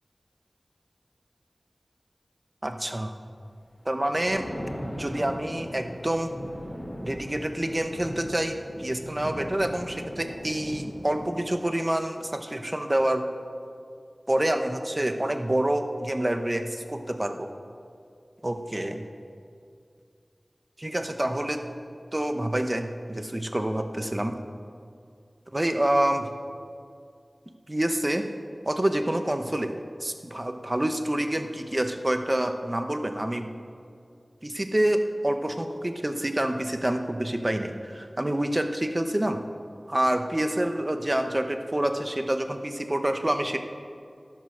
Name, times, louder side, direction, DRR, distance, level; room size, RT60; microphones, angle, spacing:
voice 1, 2.6-3.1 3.8-4.5 4.8-6.3 7.0-13.3 14.3-17.5 18.4-19.0 20.8-21.7 22.1-24.4 25.5-26.3 27.7-28.3 28.7-29.7 30.0-33.5 34.4-39.4 39.9-43.6, right 1 dB, 30° right, 7 dB, 0.9 m, -27 dB
Thunder, 4.0-11.6, equal, 50° left, 3.4 m, -39 dB
12.0 x 9.2 x 6.4 m, 2.3 s
wide cardioid pair, 50°, 0 cm